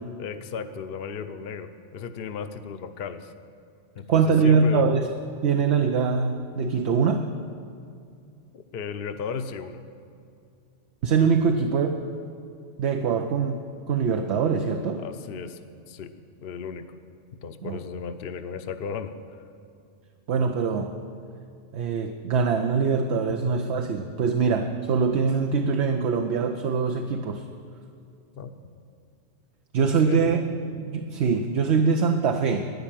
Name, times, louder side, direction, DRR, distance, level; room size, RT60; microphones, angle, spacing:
voice 1, 0.2-3.3 4.0-4.9 8.5-9.8 15.0-15.6 15.9-16.1 16.4-16.8 17.3-19.1 28.4-28.5 30.1-30.3, left 6 dB, 55° left, 8 dB, 0.8 m, -35 dB
voice 2, 4.1-5.1 5.4-7.3 11.0-12.0 12.8-13.6 13.9-15.0 17.6-17.8 20.3-20.9 21.7-27.4 29.7-30.4 30.8-32.7, right 5 dB, 65° right, 5 dB, 0.9 m, -23 dB
12.0 x 9.8 x 9.0 m, 2.4 s
omnidirectional pair, 1.3 m